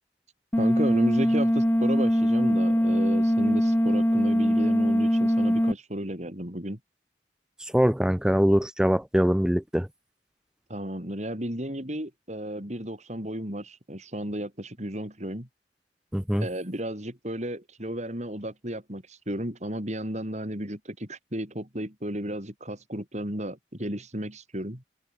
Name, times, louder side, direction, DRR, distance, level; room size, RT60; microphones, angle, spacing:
sound 1, 0.5-5.7, equal, 10° left, 1.9 m, -22 dB
voice 1, 0.6-6.8 10.7-15.5 16.4-24.8, right 1 dB, 40° right, 6.1 m, -33 dB
voice 2, 7.7-9.9 16.1-16.5, equal, 5° right, 0.6 m, -22 dB
head